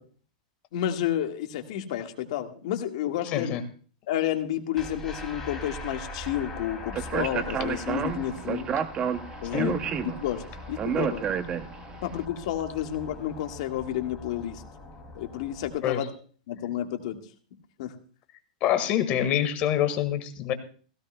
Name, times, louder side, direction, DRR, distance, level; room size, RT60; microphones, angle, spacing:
voice 1, 0.7-3.5 4.1-8.7 9.4-9.8 10.2-11.2 12.0-14.6 15.1-16.1 16.5-17.2 17.8-17.9, left 11 dB, 60° left, 5 dB, 1.6 m, -31 dB
voice 2, 3.2-3.6 9.5-9.7 15.8-16.1 18.6-20.5, left 10 dB, 35° left, 9 dB, 1.6 m, -26 dB
sound 1, 4.7-15.7, left 1 dB, 10° left, 2.6 m, -42 dB
Speech, 6.9-12.0, right 7 dB, 20° right, 0.7 m, -30 dB
16.5 x 16.5 x 2.2 m, 0.41 s
supercardioid pair, 150°, 4 cm